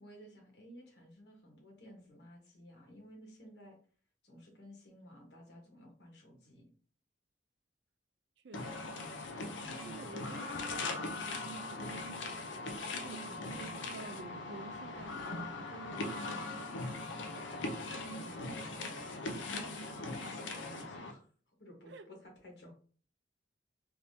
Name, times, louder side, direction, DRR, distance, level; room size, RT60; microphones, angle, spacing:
voice 1, 0.0-3.8 4.2-6.7 13.2-13.5 18.2-19.5 20.1-21.3 21.6-22.7, equal, 60° left, 1.2 m, -55 dB
voice 2, 8.4-9.3 9.8-12.5 13.0-17.3 21.9-22.1, right 3 dB, 65° right, 0.4 m, -51 dB
sound 1, 8.5-21.1, left 2 dB, 80° left, 0.5 m, -40 dB
3.4 x 2.7 x 2.7 m
head